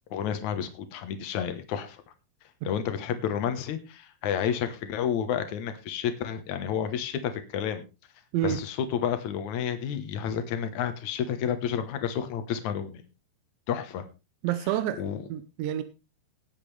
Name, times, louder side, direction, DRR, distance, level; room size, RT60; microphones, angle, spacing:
voice 1, 0.1-2.0 2.6-7.8 8.4-13.0 13.7-14.0 15.0-15.2, left 8 dB, 90° left, 8 dB, 1.6 m, -30 dB
voice 2, 14.4-15.0 15.3-15.8, right 12 dB, 80° right, 11 dB, 3.0 m, -28 dB
19.0 x 9.1 x 3.3 m, 0.29 s
omnidirectional pair, 5.4 m